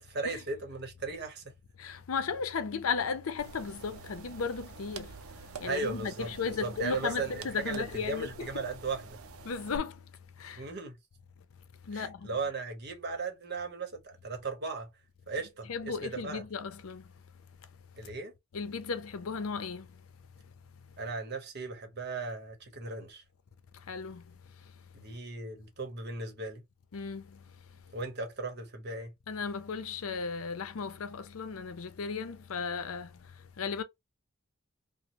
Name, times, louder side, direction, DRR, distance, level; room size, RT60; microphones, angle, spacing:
voice 1, 0.0-1.4 5.6-9.2 10.6-11.0 11.9-14.9 15.3-16.4 18.0-18.3 21.0-23.2 24.9-26.6 27.9-29.1, right 3 dB, 50° right, 0.9 m, -37 dB
voice 2, 1.8-5.1 5.6-8.5 9.4-9.9 10.4-10.6 11.9-12.2 15.7-17.0 18.5-19.9 23.9-24.2 26.9-27.2 29.3-33.1 33.6-33.8, left 5 dB, 80° left, 0.5 m, -35 dB
sound 1, 3.4-9.8, right 5 dB, 85° right, 0.6 m, -48 dB
3.0 x 2.0 x 2.8 m
head